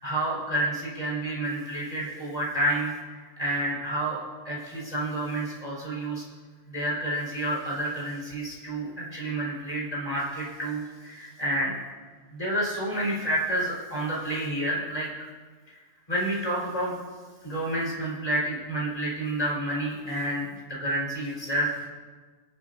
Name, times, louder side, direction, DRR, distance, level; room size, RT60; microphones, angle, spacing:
voice 1, 0.0-4.2 4.4-6.2 6.7-11.7 12.3-15.1 16.1-17.0 17.4-21.9, right 1 dB, 30° left, -5 dB, 4.6 m, -29 dB
27.0 x 10.5 x 2.7 m, 1.5 s
omnidirectional pair, 1.2 m